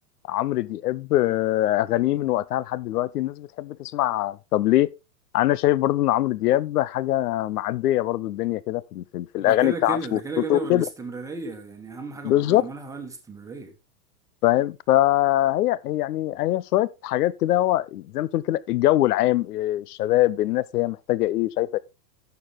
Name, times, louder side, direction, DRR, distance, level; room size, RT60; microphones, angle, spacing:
voice 1, 0.3-4.9 5.3-10.9 12.2-12.6 14.4-21.8, left 15 dB, 70° left, 0.8 m, -23 dB
voice 2, 9.3-13.7, right 3 dB, 5° right, 1.3 m, -34 dB
11.0 x 7.0 x 3.6 m
supercardioid pair, 160°, 47 cm